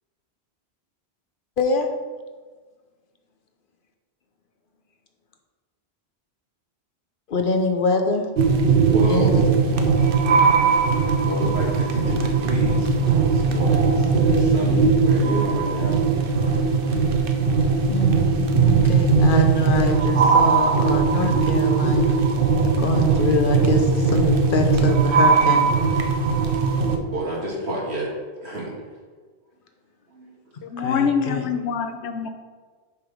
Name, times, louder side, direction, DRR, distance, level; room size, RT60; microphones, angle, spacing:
voice 1, 1.6-1.9 7.3-8.3 9.0-9.3 17.9-22.2 22.8-25.7 30.8-31.4, left 3 dB, 55° left, 5 dB, 0.9 m, -24 dB
sound 1, 8.4-27.0, right 5 dB, 60° right, 0.8 m, -19 dB
voice 2, 8.8-9.3 11.1-16.1 16.5-16.7 17.5-17.7 18.1-18.3 26.9-28.1 28.4-28.8 30.1-30.4 30.6-30.7, right 1 dB, 80° right, -4 dB, 2.1 m, -31 dB
voice 3, 30.6-32.3, left 6 dB, 85° left, 7 dB, 1.0 m, -25 dB
7.0 x 4.9 x 5.2 m, 1.5 s
omnidirectional pair, 1.1 m